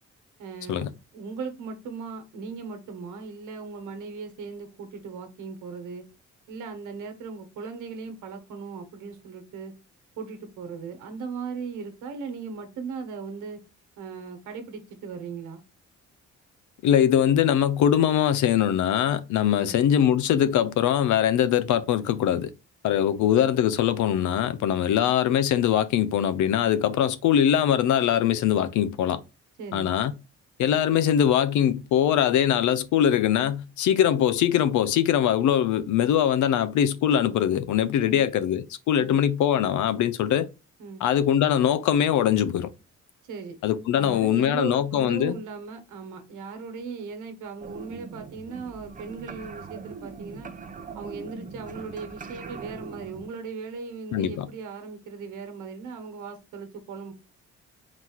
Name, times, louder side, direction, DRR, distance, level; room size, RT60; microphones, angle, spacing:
voice 1, 0.4-6.0 6.5-9.7 10.2-13.6 14.0-15.6 19.5-19.8 23.1-23.2 29.6-29.9 38.0-38.2 39.0-39.2 40.8-41.0 43.2-43.6 43.9-50.5 50.9-57.1, right 5 dB, 85° right, 1.1 m, -38 dB
voice 2, 16.8-22.5 22.8-29.2 29.7-30.1 30.6-40.5 41.0-42.7 43.6-45.4 54.1-54.5, left 10 dB, 75° left, 0.5 m, -22 dB
sound 1, 47.6-53.3, right 5 dB, 25° right, 0.5 m, -41 dB
4.1 x 2.4 x 4.3 m
cardioid pair, 90°, 30 cm